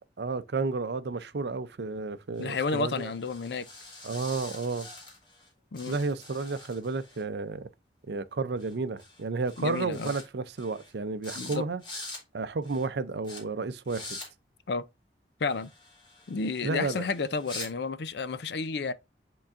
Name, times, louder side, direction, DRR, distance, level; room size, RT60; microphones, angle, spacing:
voice 1, 0.2-3.1 4.0-4.9 5.9-7.7 8.1-11.8 12.3-14.2 16.6-17.1, right 3 dB, 65° right, 0.5 m, -32 dB
voice 2, 2.4-3.7 5.7-6.0 9.6-10.1 11.4-11.6 14.7-14.8 15.4-15.7 16.3-18.9, left 4 dB, 65° left, 0.5 m, -31 dB
sound 1, 2.4-5.5 5.7-7.2 8.6-8.7 9.0-9.2 9.5-10.2 10.6-10.9 11.2-11.6 11.8-12.2 12.6-12.9 13.2-13.4 13.8-14.3 15.5-17.7, left 2 dB, 25° left, 2.4 m, -45 dB
9.9 x 3.8 x 2.5 m
head